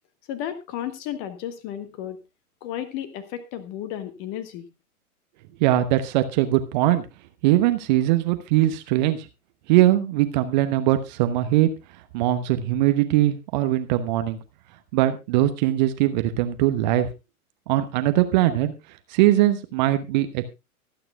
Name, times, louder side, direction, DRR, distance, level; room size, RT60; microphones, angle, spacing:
voice 1, 0.3-2.2 2.6-4.7, left 10 dB, 30° left, 11 dB, 1.7 m, -33 dB
voice 2, 5.6-7.0 7.4-9.3 9.7-11.7 12.1-14.4 14.9-17.1 17.7-18.7 19.1-20.4, right 14 dB, 30° right, 9 dB, 1.1 m, -21 dB
24.0 x 9.1 x 2.3 m, 0.26 s
figure-of-eight pair, 110°, 44 cm